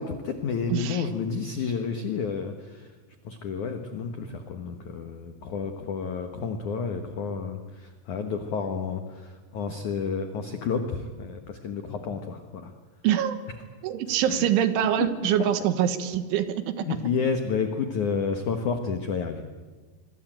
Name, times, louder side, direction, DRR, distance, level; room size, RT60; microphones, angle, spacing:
voice 1, 0.0-2.9 3.2-12.7 14.3-14.5 16.8-19.4, left 5 dB, 85° left, 6 dB, 1.7 m, -30 dB
voice 2, 0.7-1.0 13.0-13.4 13.8-16.9, right 10 dB, 75° right, 10 dB, 3.6 m, -24 dB
26.0 x 23.5 x 9.1 m, 1.4 s
omnidirectional pair, 5.8 m